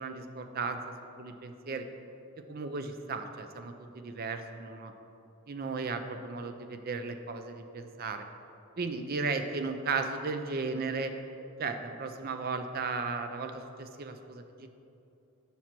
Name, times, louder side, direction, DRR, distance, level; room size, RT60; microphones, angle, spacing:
voice 1, 0.0-1.8 2.5-4.9 5.5-8.3 8.8-11.1 11.6-14.7, right 4 dB, 40° right, 7 dB, 0.5 m, -35 dB
7.3 x 5.6 x 6.0 m, 2.7 s
head